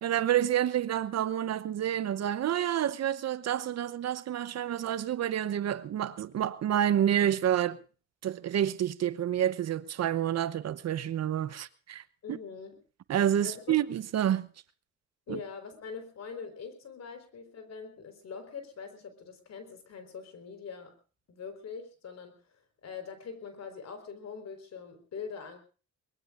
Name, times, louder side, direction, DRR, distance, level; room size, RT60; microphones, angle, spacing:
voice 1, 0.0-7.8 8.2-12.0 12.3-12.4 13.1-14.5 15.3-15.4, right 10 dB, 60° right, 0.9 m, -28 dB
voice 2, 12.2-12.7 13.4-13.8 15.3-20.9 21.3-22.4 22.8-25.6, left 5 dB, 60° left, 4.4 m, -43 dB
23.5 x 21.0 x 2.6 m
cardioid pair, 90°, 30 cm